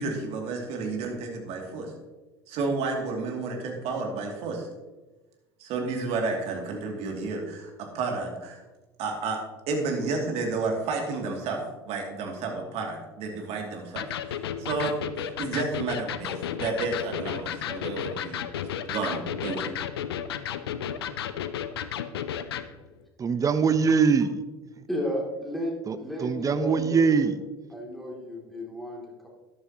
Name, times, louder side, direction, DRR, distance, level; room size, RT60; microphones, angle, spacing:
voice 1, 0.0-1.9 2.5-4.7 5.6-8.6 9.0-9.4 9.7-11.6 11.9-14.1 14.6-18.4 18.9-19.7, right 3 dB, 50° right, 1 dB, 2.6 m, -31 dB
Electric guitar, 14.0-22.7, left 9 dB, 75° left, 0.6 m, -33 dB
voice 2, 23.2-24.3 25.9-26.0 26.2-27.4, right 5 dB, 25° right, 12 dB, 0.8 m, -22 dB
voice 3, 24.9-27.3 27.7-29.3, equal, ahead, -2 dB, 2.7 m, -33 dB
13.0 x 11.0 x 3.0 m, 1.2 s
figure-of-eight pair, 70°, 13 cm